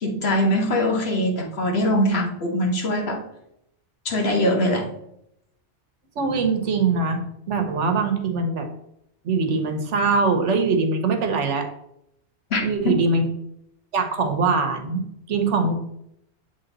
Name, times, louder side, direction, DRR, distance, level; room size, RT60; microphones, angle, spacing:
voice 1, 0.0-3.2 4.0-4.9 12.5-12.9, left 1 dB, 60° left, 1 dB, 1.5 m, -22 dB
voice 2, 6.1-7.2 7.5-8.7 9.2-11.7 12.6-13.2 13.9-15.7, right 4 dB, 85° right, 5 dB, 1.2 m, -22 dB
7.8 x 3.6 x 3.9 m, 0.77 s
omnidirectional pair, 1.2 m